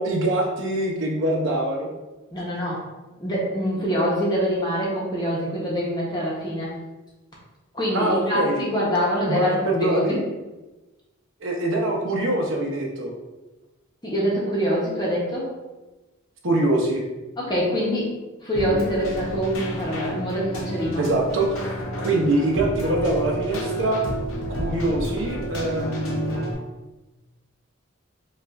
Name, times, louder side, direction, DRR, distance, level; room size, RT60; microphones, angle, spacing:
voice 1, 0.0-1.9 7.9-8.6 9.3-10.1 11.4-13.1 16.4-17.0 20.9-21.7 22.0-24.0 24.6-26.5, right 1 dB, 65° right, -1 dB, 0.8 m, -24 dB
voice 2, 2.3-2.8 3.2-6.7 7.7-10.2 14.0-15.5 17.4-18.1 18.4-21.1, equal, 20° left, -5 dB, 0.9 m, -25 dB
Keyboard (musical), 18.5-26.5, right 1 dB, 80° left, 0.8 m, -30 dB
5.2 x 2.4 x 2.5 m, 1.1 s
head